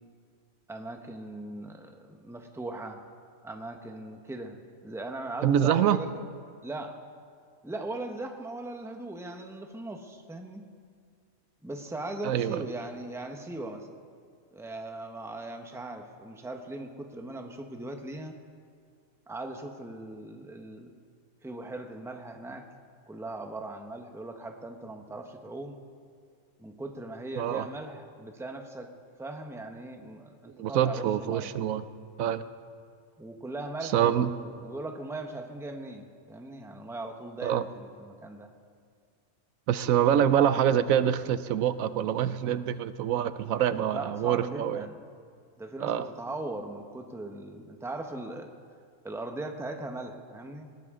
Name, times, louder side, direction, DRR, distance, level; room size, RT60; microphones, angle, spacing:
voice 1, 0.7-3.0 3.4-6.2 6.6-7.0 7.6-10.6 11.6-13.9 14.5-18.4 19.3-20.9 21.4-22.7 23.1-25.8 26.6-28.9 29.2-31.5 33.2-38.5 43.9-45.0 45.6-48.5 49.0-50.7, right 2 dB, ahead, 4 dB, 0.9 m, -39 dB
voice 2, 5.4-6.0 12.2-12.6 27.4-27.7 30.6-31.8 32.2-32.4 33.8-34.3 37.4-37.6 39.7-44.9 45.8-46.1, right 9 dB, 80° right, 13 dB, 1.0 m, -25 dB
19.5 x 19.0 x 3.7 m, 2.1 s
omnidirectional pair, 1.4 m